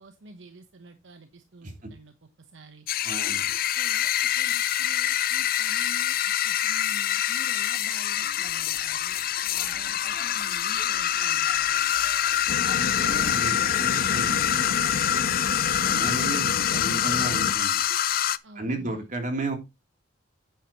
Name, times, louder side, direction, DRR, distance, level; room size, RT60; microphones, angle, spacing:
voice 1, 0.0-2.9 3.7-11.8 18.4-19.0, right 2 dB, 70° right, 7 dB, 1.0 m, -49 dB
sound 1, 2.9-18.4, left 11 dB, 50° left, 0.5 m, -25 dB
voice 2, 3.0-3.5 12.7-15.2 15.8-17.8 18.5-19.6, right 2 dB, 45° right, 3 dB, 3.1 m, -34 dB
sound 2, 8.1-16.0, right 1 dB, 15° right, 2.6 m, -48 dB
sound 3, 12.5-17.5, left 2 dB, 90° left, 1.1 m, -33 dB
9.3 x 8.8 x 3.0 m, 0.24 s
head